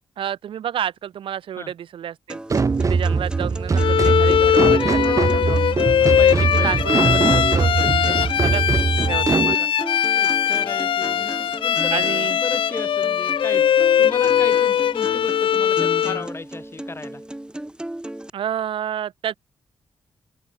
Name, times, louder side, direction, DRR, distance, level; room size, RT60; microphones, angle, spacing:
voice 1, 0.2-2.4 2.8-5.6 6.4-7.8 8.4-8.6 9.1-9.7 11.9-12.4 18.3-19.3, right 10 dB, 85° right, 6.0 m, -29 dB
sound 1, 2.3-18.3, right 1 dB, 10° right, 3.6 m, -35 dB
sound 2, 2.5-9.5, right 4 dB, 40° right, 1.4 m, -21 dB
Bowed string instrument, 3.8-16.3, left 9 dB, 80° left, 1.1 m, -20 dB
voice 2, 5.0-6.9 8.0-8.3 9.3-9.6 10.1-13.7 14.0-17.2, left 3 dB, 30° left, 4.5 m, -35 dB
cardioid pair, 80°, 9 cm